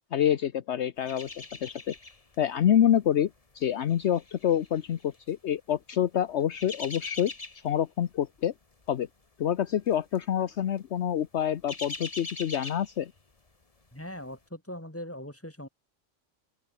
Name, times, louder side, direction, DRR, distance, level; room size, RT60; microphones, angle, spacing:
voice 1, 0.1-1.9 2.4-3.3 3.5-7.3 7.6-8.5 8.9-9.1 9.4-13.1, left 10 dB, 65° left, 1.1 m, -27 dB
sound 1, 1.1-2.4 2.7-2.9 3.6-5.3 6.3-7.8 8.2-8.5 8.7-8.9 9.8-10.2 10.5-10.7 11.2-13.5 13.8-13.9, left 3 dB, 30° left, 1.7 m, -42 dB
voice 2, 13.9-15.7, left 1 dB, 10° left, 4.3 m, -40 dB
open air
omnidirectional pair, 1.3 m